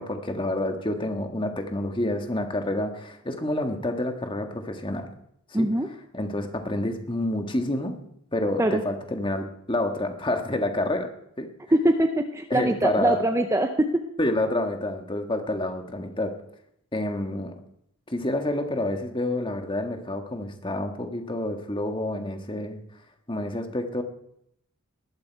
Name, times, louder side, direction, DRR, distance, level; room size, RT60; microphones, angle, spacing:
voice 1, 0.0-5.1 5.5-5.7 6.1-8.0 8.3-11.1 11.4-11.5 12.5-13.2 14.2-16.4 16.9-17.5 18.1-22.8 23.3-24.0, left 1 dB, 20° left, 5 dB, 1.6 m, -28 dB
voice 2, 5.5-5.9 8.6-8.8 11.7-13.9, right 1 dB, 15° right, 6 dB, 0.7 m, -22 dB
20.5 x 12.0 x 4.7 m, 0.74 s
head